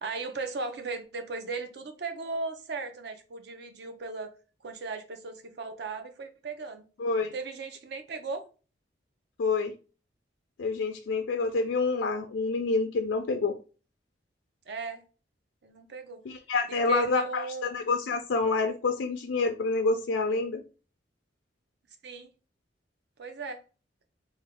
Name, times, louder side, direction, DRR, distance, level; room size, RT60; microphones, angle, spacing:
voice 1, 0.0-4.3 4.6-6.8 7.3-8.5 14.7-15.0 15.6-16.2 16.7-17.8 22.0-22.3 23.2-23.6, right 4 dB, 65° right, 0.6 m, -37 dB
voice 2, 7.0-7.3 9.4-9.7 10.6-13.5 16.3-17.4 17.7-20.6, left 3 dB, 80° left, 0.4 m, -27 dB
3.4 x 2.3 x 3.4 m
head